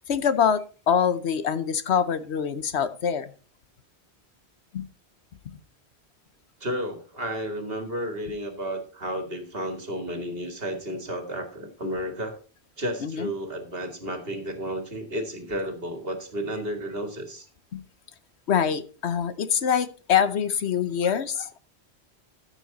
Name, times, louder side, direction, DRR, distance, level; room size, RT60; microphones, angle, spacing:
voice 1, 0.1-3.3 4.7-4.9 13.0-13.3 17.7-17.8 18.5-21.6, left 8 dB, 85° left, 1.2 m, -24 dB
voice 2, 6.6-12.4 12.8-17.5, equal, 65° right, 2.4 m, -32 dB
14.0 x 7.1 x 4.1 m
omnidirectional pair, 1.1 m